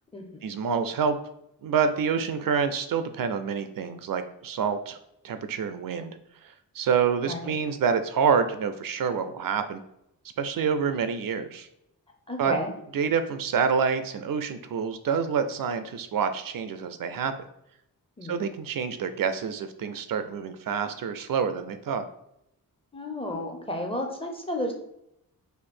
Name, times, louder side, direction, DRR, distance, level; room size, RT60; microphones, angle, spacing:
voice 1, 0.4-1.2 1.6-5.0 5.2-6.2 6.4-9.8 10.4-11.7 12.4-12.5 12.9-17.3 18.3-22.0, right 6 dB, 65° right, 10 dB, 0.5 m, -27 dB
voice 2, 12.3-12.7 18.2-18.4 22.9-24.7, left 1 dB, 15° left, 2 dB, 0.6 m, -32 dB
4.5 x 2.6 x 4.3 m, 0.79 s
wide cardioid pair, 180°, 36 cm